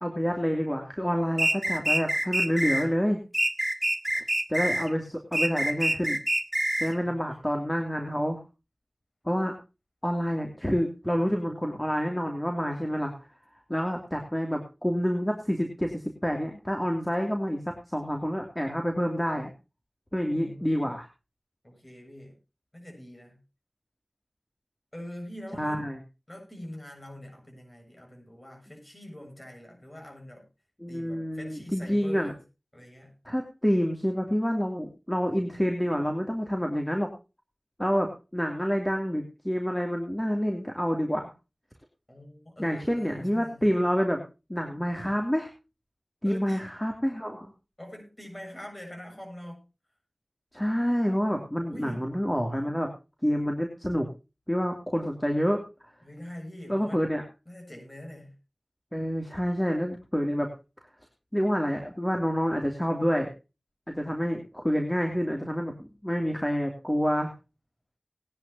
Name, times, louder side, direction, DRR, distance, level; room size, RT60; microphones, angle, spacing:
voice 1, 0.0-3.2 4.5-6.2 6.8-8.4 9.2-9.5 10.0-13.1 13.7-19.5 20.1-21.1 25.6-26.0 30.8-32.3 33.3-37.1 37.8-41.3 42.6-44.2 44.5-45.5 46.2-47.5 50.5-52.9 53.2-54.1 54.5-55.6 56.7-57.2 58.9-60.5 61.3-63.3 63.9-67.3, equal, 10° left, 2.7 m, -28 dB
sound 1, 1.4-2.8 3.3-4.9 5.3-6.9, right 1 dB, 25° right, 1.7 m, -26 dB
voice 2, 7.0-7.5 20.3-20.9 21.6-22.4 22.7-23.4 24.9-25.9 26.3-30.5 30.9-32.4 32.7-33.2 42.1-43.8 46.2-46.7 47.8-49.7 51.6-52.1 56.0-57.0 57.5-58.4, left 1 dB, 30° left, 7.8 m, -44 dB
19.5 x 10.5 x 2.8 m
wide cardioid pair, 40°, 0 cm